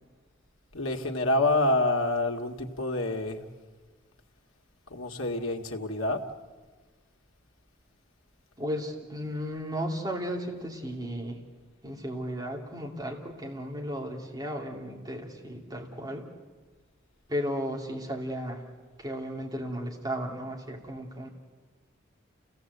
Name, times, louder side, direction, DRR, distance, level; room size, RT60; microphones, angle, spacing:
voice 1, 0.7-3.4 4.9-6.2, left 2 dB, 90° left, 2 dB, 1.9 m, -27 dB
voice 2, 8.6-11.4 11.8-16.3 17.3-18.7 19.0-21.3, equal, 20° right, -1 dB, 2.6 m, -34 dB
28.5 x 17.0 x 8.0 m, 1.4 s
head